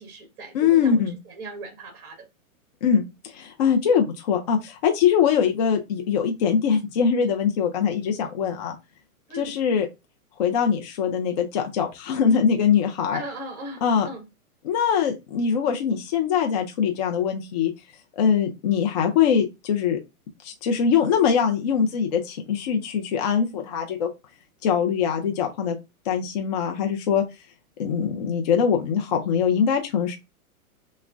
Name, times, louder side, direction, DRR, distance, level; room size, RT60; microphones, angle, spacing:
voice 1, 0.0-2.3 9.3-9.6 13.1-14.2, right 1 dB, 30° right, 1.6 m, -38 dB
voice 2, 0.5-1.2 2.8-8.8 9.4-9.9 10.4-13.2 13.8-14.1 14.6-17.7 18.1-20.0 20.4-24.1 24.6-25.8 26.1-27.2 27.8-30.2, left 7 dB, 30° left, 0.4 m, -22 dB
5.9 x 2.1 x 2.4 m
hypercardioid pair, 140°, 44 cm